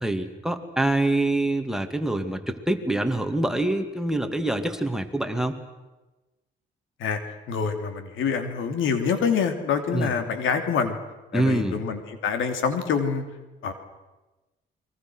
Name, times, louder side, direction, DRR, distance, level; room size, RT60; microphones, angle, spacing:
voice 1, 0.0-5.6 9.9-10.1 11.3-11.8, right 1 dB, 5° right, 6 dB, 2.3 m, -25 dB
voice 2, 7.5-11.0 11.3-13.2 13.6-13.7, left 6 dB, 80° left, 7 dB, 3.0 m, -26 dB
30.0 x 22.5 x 6.4 m, 1.1 s
cardioid pair, 90°, 20 cm